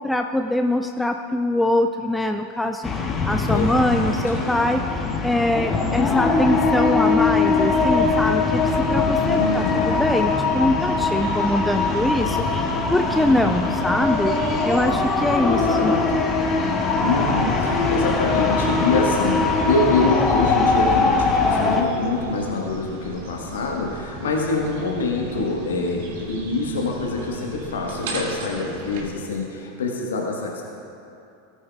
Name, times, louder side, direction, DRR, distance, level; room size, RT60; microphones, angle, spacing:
voice 1, 0.0-15.9, left 1 dB, 5° left, 6 dB, 0.4 m, -23 dB
sound 1, 2.8-21.8, left 4 dB, 25° left, 1.1 m, -21 dB
voice 2, 3.5-4.5 6.1-6.5 9.2-9.8 13.3-13.7 15.5-16.3 17.0-30.6, left 3 dB, 70° left, -1 dB, 1.3 m, -25 dB
sound 2, 9.2-29.1, right 3 dB, 60° right, 1.7 m, -38 dB
18.0 x 8.9 x 2.4 m, 2.6 s
figure-of-eight pair, 85°, 0 cm